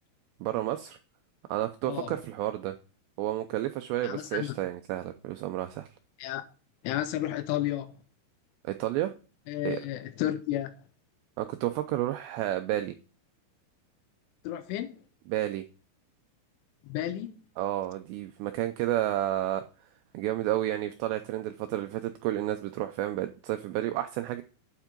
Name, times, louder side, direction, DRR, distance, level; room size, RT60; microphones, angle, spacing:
voice 1, 0.4-1.0 1.5-2.8 3.2-5.9 8.6-9.1 9.6-9.8 11.4-13.0 15.3-15.7 17.6-19.6 20.1-24.4, right 14 dB, 90° right, 2.4 m, -31 dB
voice 2, 4.0-4.5 6.2-6.4 6.8-8.0 9.5-10.7 14.4-15.0 16.8-17.4, left 13 dB, 80° left, 3.2 m, -32 dB
9.4 x 7.2 x 3.7 m
omnidirectional pair, 5.6 m